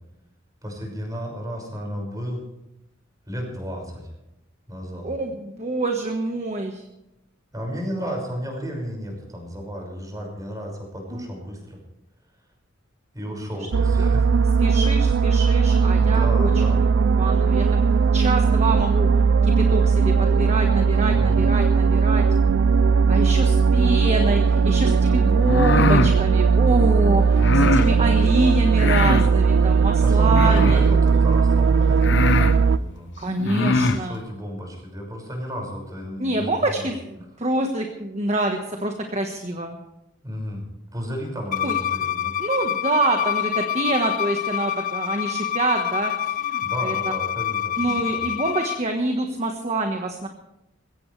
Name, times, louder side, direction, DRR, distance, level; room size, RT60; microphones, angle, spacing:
voice 1, 0.6-2.5 3.3-4.1 4.7-5.1 7.5-11.8 13.1-14.3 16.0-16.9 21.1-21.5 30.0-33.1 34.0-36.9 40.2-40.7 40.9-42.4 46.6-48.2, equal, 20° right, 1 dB, 5.8 m, -33 dB
voice 2, 5.0-6.8 11.2-11.3 14.0-14.1 14.6-16.5 17.2-17.8 18.1-19.1 19.4-22.3 23.1-30.8 33.2-34.2 36.2-37.0 37.4-39.8 41.6-41.8 42.4-46.9 47.8-50.3, right 2 dB, 35° right, 3 dB, 1.4 m, -26 dB
sound 1, 13.7-32.8, right 5 dB, 60° right, 0.4 m, -18 dB
sound 2, 25.4-26.1 27.4-27.9 28.7-29.3 30.3-30.9 31.6-31.7 32.0-32.6 33.4-34.0, left 3 dB, 60° left, 0.9 m, -22 dB
Bowed string instrument, 41.5-48.8, left 10 dB, 40° left, 0.4 m, -26 dB
21.5 x 17.0 x 3.3 m, 0.89 s
head